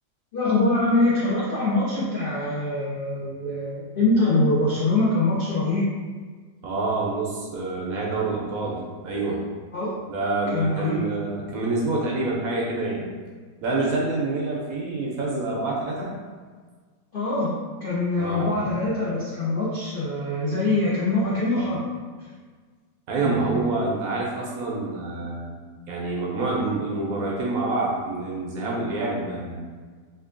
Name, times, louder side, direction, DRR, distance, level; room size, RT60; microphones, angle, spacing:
voice 1, 0.3-5.9 9.7-10.0 10.5-11.2 17.1-17.5 17.8-21.8 22.2-22.3 23.2-23.6, left 2 dB, 80° left, -9 dB, 0.4 m, -24 dB
voice 2, 6.6-9.4 10.1-13.1 13.6-16.1 18.2-18.6 23.1-25.5 25.9-29.6, right 3 dB, 70° right, -3 dB, 0.8 m, -27 dB
4.3 x 2.6 x 2.5 m, 1.5 s
omnidirectional pair, 2.0 m